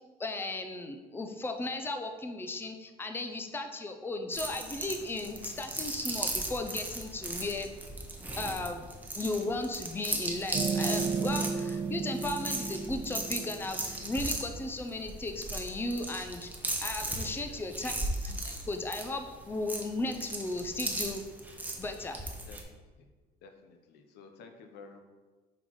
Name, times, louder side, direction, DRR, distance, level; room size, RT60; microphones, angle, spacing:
voice 1, 0.2-7.7 8.4-8.8 9.2-16.5 16.8-18.0 18.2-21.2 21.8-22.3, left 2 dB, 15° left, 6 dB, 0.5 m, -36 dB
sound 1, 4.3-22.6, right 1 dB, 10° right, 0.9 m, -37 dB
sound 2, 10.5-14.1, right 5 dB, 40° right, 0.8 m, -33 dB
voice 2, 17.0-17.7 22.5-22.6 23.4-25.0, left 4 dB, 80° left, 6 dB, 0.7 m, -52 dB
5.7 x 3.9 x 4.6 m, 1.3 s
cardioid pair, 110°, 17 cm